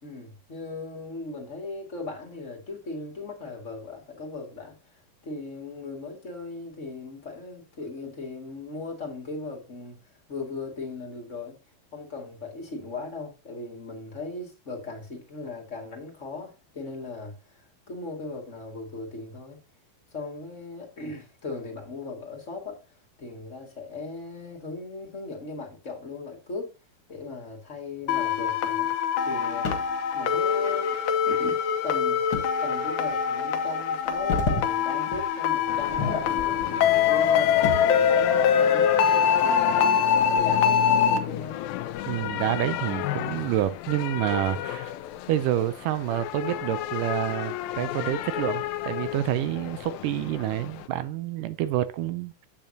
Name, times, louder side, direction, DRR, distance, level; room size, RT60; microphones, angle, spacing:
voice 1, 0.0-4.8 5.2-11.6 11.9-19.6 20.1-26.7 27.1-28.9 29.2-31.0 31.3-32.4 32.6-41.6, left 3 dB, 25° left, 1.8 m, -38 dB
sound 1, 28.1-41.2, left 7 dB, 65° left, 2.3 m, -23 dB
sound 2, 29.6-30.0 32.3-32.5 33.1-33.2 34.0-34.7 35.1-35.3 35.8-36.7 37.1-38.0 39.5-40.7 41.1-41.2 41.9-42.3, left 3 dB, 45° left, 2.2 m, -31 dB
sound 3, 35.7-50.9, left 13 dB, 80° left, 2.3 m, -33 dB
voice 2, 42.1-44.9 45.3-52.5, right 12 dB, 80° right, 2.0 m, -28 dB
8.7 x 8.6 x 2.8 m
omnidirectional pair, 4.2 m